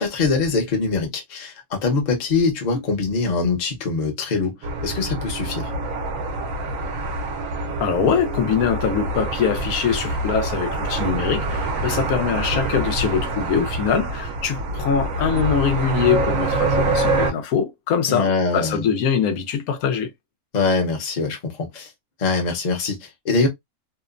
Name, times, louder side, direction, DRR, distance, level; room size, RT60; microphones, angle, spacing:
voice 1, 0.0-4.5 4.8-5.7 18.1-18.9 20.5-21.9 22.2-23.5, left 4 dB, 40° left, 0.7 m, -23 dB
sound 1, 4.6-17.3, right 2 dB, 70° right, 1.0 m, -25 dB
voice 2, 7.8-20.1, left 7 dB, 80° left, 1.1 m, -23 dB
2.9 x 2.1 x 2.4 m
omnidirectional pair, 1.5 m